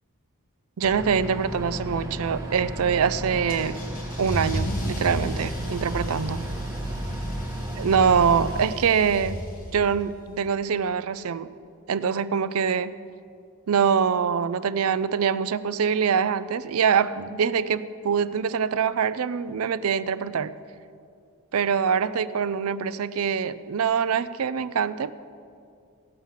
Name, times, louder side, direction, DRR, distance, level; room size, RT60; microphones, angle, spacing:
sound 1, 0.8-8.6, right 1 dB, 15° right, 1.6 m, -34 dB
voice 1, 0.8-3.8 4.2-6.4 7.8-9.4 9.7-11.5 11.9-12.9 13.7-20.5 21.5-25.1, right 6 dB, 75° right, 15 dB, 0.5 m, -24 dB
Car / Engine starting / Accelerating revving vroom, 3.5-10.0, equal, 40° left, 1.8 m, -33 dB
17.0 x 7.3 x 5.7 m, 2.4 s
head